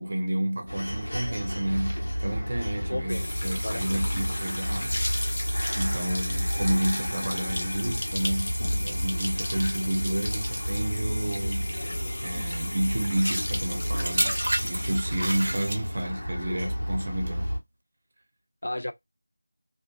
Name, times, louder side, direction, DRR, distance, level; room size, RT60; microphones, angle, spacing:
voice 1, 0.0-5.2 5.7-11.7 12.2-14.3 14.6-17.5, right 1 dB, 35° right, 0.5 m, -30 dB
sound 1, 0.7-17.6, equal, 85° left, 1.1 m, -31 dB
voice 2, 2.7-3.8 18.6-18.9, left 1 dB, 70° left, 0.4 m, -34 dB
sound 2, 3.1-15.0, left 1 dB, 45° left, 0.8 m, -35 dB
sound 3, 13.1-16.2 17.0-17.3, right 1 dB, 90° right, 0.5 m, -31 dB
2.4 x 2.4 x 2.2 m
figure-of-eight pair, 175°, 0 cm